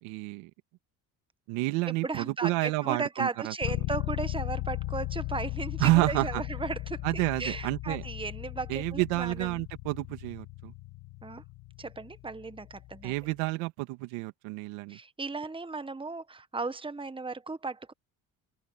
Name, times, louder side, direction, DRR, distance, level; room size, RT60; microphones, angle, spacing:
voice 1, 0.0-0.5 1.5-3.5 5.8-6.4 7.0-8.0 8.7-10.7 13.0-15.0, right 22 dB, 85° right, 2.1 m, -29 dB
voice 2, 1.9-9.5 11.2-11.4 11.8-13.1 14.9-17.9, right 3 dB, 10° right, 1.3 m, -36 dB
sound 1, 3.6-13.3, left 16 dB, 70° left, 1.7 m, -37 dB
open air
supercardioid pair, 65°, 49 cm